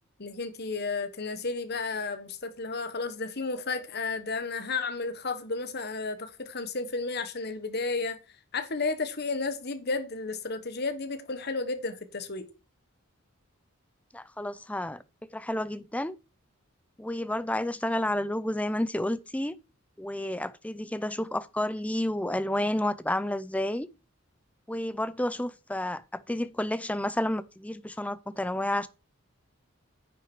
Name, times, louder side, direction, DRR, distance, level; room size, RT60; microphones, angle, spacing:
voice 1, 0.2-8.2 8.5-12.5, left 3 dB, 50° left, 1.4 m, -32 dB
voice 2, 14.1-16.1 17.0-19.6 20.0-23.9 24.7-28.9, left 1 dB, 5° left, 0.5 m, -30 dB
9.7 x 6.6 x 4.6 m
head